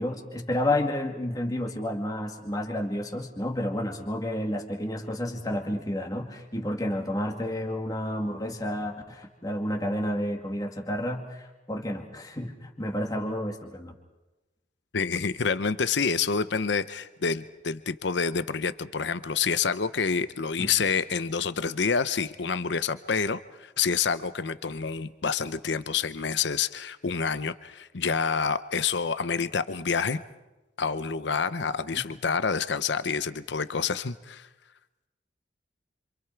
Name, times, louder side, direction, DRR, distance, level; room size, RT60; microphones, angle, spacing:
voice 1, 0.0-13.9 20.6-20.7, left 1 dB, 20° left, 2 dB, 2.2 m, -30 dB
voice 2, 14.9-30.2 30.8-34.5, left 5 dB, 70° left, 13 dB, 0.7 m, -28 dB
27.0 x 26.5 x 4.6 m, 1.1 s
head